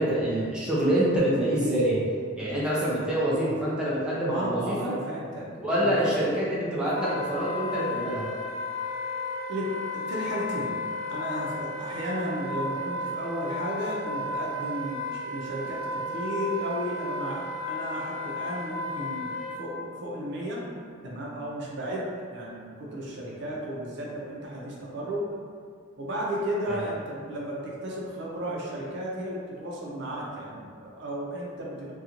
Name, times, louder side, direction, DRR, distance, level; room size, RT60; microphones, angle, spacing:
voice 1, 0.0-2.0 2.4-4.9 5.6-8.3 26.7-26.8, right 1 dB, 5° right, -8 dB, 0.5 m, -26 dB
voice 2, 4.3-5.5 5.8-6.2 9.5-10.8 11.1-20.7 21.0-25.3 26.0-31.9, equal, 65° right, -4 dB, 0.5 m, -34 dB
Wind instrument woodwind instrument, 6.9-19.6, left 2 dB, 85° left, 0.5 m, -34 dB
2.5 x 2.2 x 2.9 m, 2.1 s
head